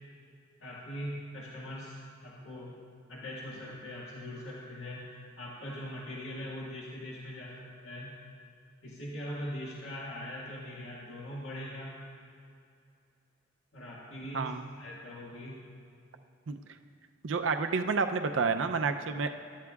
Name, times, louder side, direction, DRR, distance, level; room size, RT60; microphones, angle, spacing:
voice 1, 0.6-2.0 2.2-2.8 3.1-8.1 8.8-12.0 13.7-15.6, equal, 90° left, -6 dB, 1.7 m, -41 dB
voice 2, 17.2-19.3, right 4 dB, 90° right, 7 dB, 0.6 m, -29 dB
24.0 x 12.0 x 2.4 m, 2.5 s
head